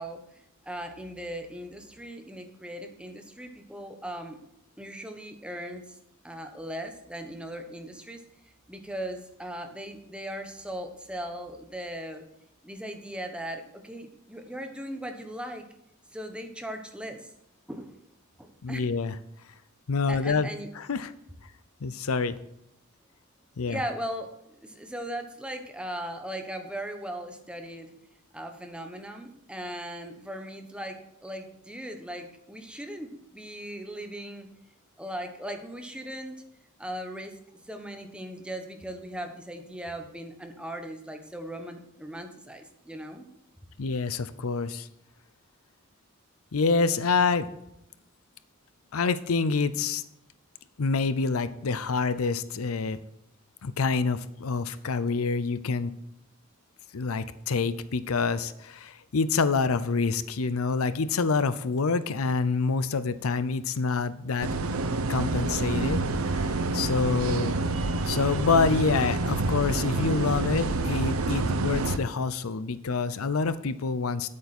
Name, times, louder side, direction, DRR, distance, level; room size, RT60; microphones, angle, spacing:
voice 1, 0.0-4.4 4.8-6.0 6.2-8.2 8.7-12.2 12.6-15.7 16.1-17.3 17.7-18.0 18.4-18.8 20.1-20.7 23.7-27.9 28.3-34.5 35.0-36.3 36.8-37.3 37.6-43.2, right 1 dB, 5° right, 5 dB, 1.1 m, -38 dB
voice 2, 18.6-19.1 19.9-20.5 20.8-21.1 21.8-22.4 23.6-23.8 43.8-44.9 46.5-47.5 48.9-50.0 50.8-53.0 53.6-55.9 56.9-64.6 65.1-66.0 66.3-67.7 68.0-74.3, left 4 dB, 90° left, 14 dB, 0.6 m, -27 dB
sound 1, 64.4-72.0, right 3 dB, 85° right, 0.8 m, -28 dB
9.4 x 8.5 x 4.3 m, 0.79 s
head